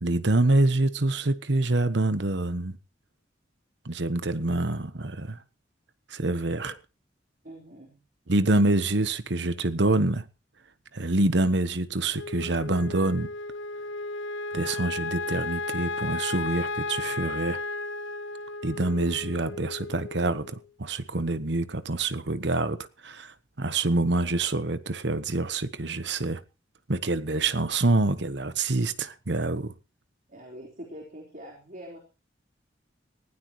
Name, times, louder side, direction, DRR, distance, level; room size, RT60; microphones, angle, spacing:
voice 1, 0.0-2.7 3.8-5.4 6.1-6.7 8.3-10.2 10.9-13.3 14.5-17.6 18.6-26.4 26.9-29.7, right 2 dB, 65° right, 1.2 m, -26 dB
voice 2, 7.4-8.0 30.3-32.0, equal, 45° right, 4.2 m, -44 dB
Wind instrument woodwind instrument, 12.1-20.6, left 3 dB, 90° left, 1.2 m, -34 dB
20.0 x 16.0 x 3.1 m
head